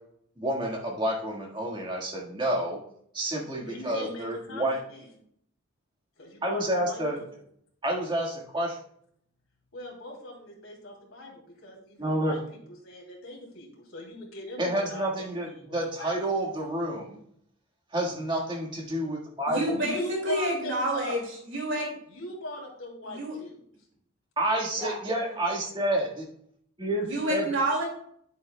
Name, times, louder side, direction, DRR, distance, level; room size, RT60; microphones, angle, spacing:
voice 1, 0.4-2.8 3.1-4.8 6.4-7.1 7.8-8.8 12.0-12.4 14.6-17.2 17.9-19.6 24.4-26.2 26.8-27.4, right 1 dB, 20° right, -1 dB, 1.6 m, -29 dB
voice 2, 3.6-5.2 6.2-7.4 9.7-16.1 19.7-21.2 22.1-23.6, left 1 dB, 85° left, -2 dB, 2.8 m, -40 dB
voice 3, 19.5-21.2 21.5-22.0 23.0-23.4 24.8-25.0 27.0-27.8, right 1 dB, 60° right, 0 dB, 2.2 m, -29 dB
9.3 x 8.1 x 2.2 m, 0.67 s
head